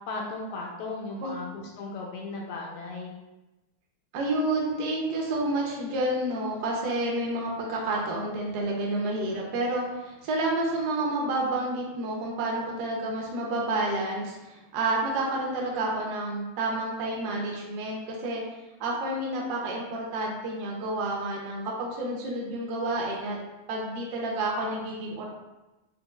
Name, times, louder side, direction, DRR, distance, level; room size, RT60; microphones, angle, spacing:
voice 1, 0.1-3.1, left 3 dB, 90° left, -1 dB, 1.5 m, -36 dB
voice 2, 4.1-18.4 18.8-23.4 23.7-25.2, right 2 dB, 70° right, -2 dB, 1.0 m, -29 dB
5.4 x 2.3 x 2.2 m, 1.1 s
omnidirectional pair, 2.3 m